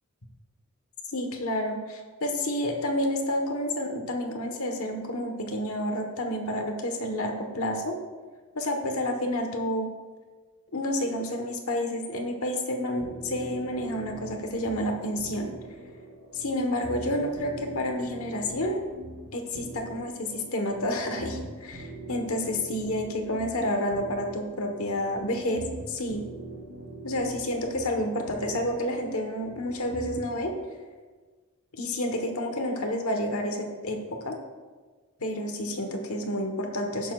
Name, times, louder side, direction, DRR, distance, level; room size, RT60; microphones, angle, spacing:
voice 1, 1.1-7.9 8.5-9.9 10.7-15.5 16.3-18.8 19.3-26.2 27.0-30.5 31.8-34.0 34.2-34.4 35.2-37.1, left 1 dB, 75° left, 3 dB, 1.3 m, -29 dB
sound 1, 13.0-30.5, right 2 dB, 85° right, 2.6 m, -42 dB
17.5 x 7.0 x 2.4 m, 1.4 s
head